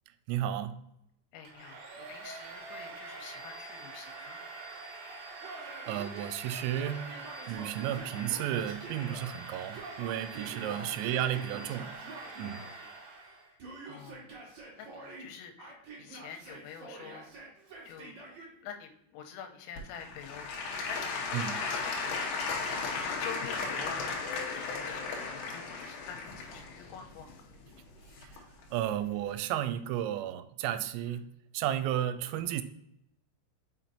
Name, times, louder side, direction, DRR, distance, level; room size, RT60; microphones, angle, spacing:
voice 1, 0.3-0.8 5.9-7.1 7.5-11.9 12.4-12.6 21.3-21.7 28.2-28.3 28.7-32.6, right 11 dB, 90° right, 3.2 m, -33 dB
voice 2, 1.3-4.4 9.5-9.6 10.7-11.0 12.6-12.9 13.5-17.3 17.8-18.2 18.6-22.5 22.9-27.4 31.1-31.2 32.0-32.1, left 7 dB, 90° left, 3.4 m, -47 dB
Domestic sounds home sounds, 1.5-13.6, right 3 dB, 65° right, 3.3 m, -45 dB
Yell, 5.4-9.3 9.7-12.7 13.6-15.3 15.6-18.5, right 3 dB, 45° right, 2.8 m, -47 dB
Applause / Crowd, 19.8-28.6 29.3-29.4, left 4 dB, 70° left, 2.7 m, -35 dB
6.3 x 5.9 x 2.7 m
omnidirectional pair, 5.8 m